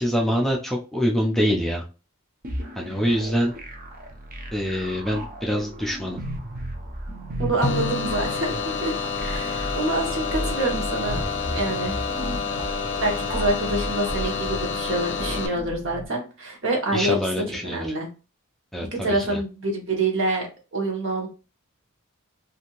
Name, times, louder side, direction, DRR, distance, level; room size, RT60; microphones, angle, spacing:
voice 1, 0.0-1.8 2.8-3.5 4.5-6.2 16.9-17.9 18.7-19.4, equal, ahead, -1 dB, 0.4 m, -25 dB
sound 1, 2.4-16.1, right 1 dB, 40° right, 0.6 m, -34 dB
voice 2, 7.4-8.5 8.8-8.9 9.2-11.2 11.5-12.0 13.0-17.2 17.6-18.1 18.8-20.5 20.7-21.3, right 2 dB, 60° right, 0 dB, 1.0 m, -26 dB
sound 2, 7.6-15.5, left 5 dB, 55° left, 0.5 m, -29 dB
Drum, 7.6-9.8, left 3 dB, 25° left, 0.8 m, -33 dB
2.7 x 2.5 x 2.9 m, 0.32 s
head